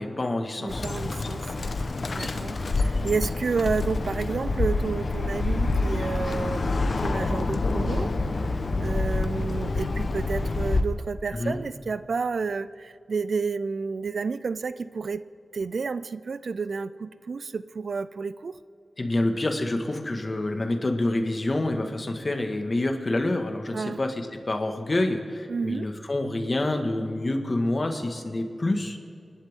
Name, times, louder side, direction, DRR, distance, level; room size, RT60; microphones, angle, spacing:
voice 1, 0.0-0.8 11.3-11.6 19.0-29.0, left 2 dB, 45° left, 5 dB, 1.8 m, -27 dB
voice 2, 0.6-1.5 2.1-8.1 8.8-15.2 15.5-18.6 23.7-24.0 25.5-25.9, right 4 dB, 75° right, 15 dB, 0.4 m, -30 dB
Bird, 0.7-10.8, left 3 dB, 60° left, 1.0 m, -27 dB
sound 1, 5.1-11.0, left 2 dB, 85° left, 1.2 m, -42 dB
25.0 x 12.0 x 3.7 m, 2.5 s
cardioid pair, 55°, 0 cm